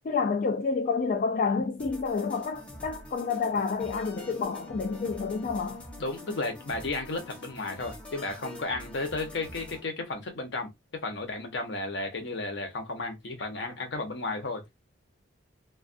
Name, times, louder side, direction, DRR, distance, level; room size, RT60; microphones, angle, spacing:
voice 1, 0.0-5.8, left 5 dB, 45° left, 0.3 m, -29 dB
sound 1, 1.8-9.8, left 1 dB, 5° left, 0.6 m, -45 dB
voice 2, 6.0-10.7 11.0-14.6, left 2 dB, 65° left, 0.8 m, -33 dB
2.3 x 2.3 x 2.5 m
head